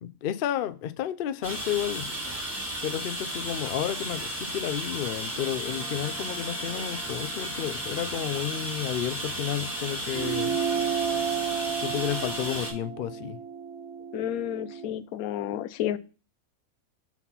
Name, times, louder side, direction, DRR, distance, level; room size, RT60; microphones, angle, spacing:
voice 1, 0.0-2.1 2.8-10.6 11.8-13.4, left 11 dB, 70° left, 0.5 m, -31 dB
sound 1, 1.4-12.7, right 1 dB, 10° left, 2.1 m, -34 dB
sound 2, 5.6-11.5, right 5 dB, 75° right, 1.6 m, -48 dB
sound 3, 10.1-15.0, right 7 dB, 60° right, 0.9 m, -32 dB
voice 2, 14.1-16.0, left 11 dB, 90° left, 1.0 m, -31 dB
5.7 x 4.2 x 4.0 m
omnidirectional pair, 1.5 m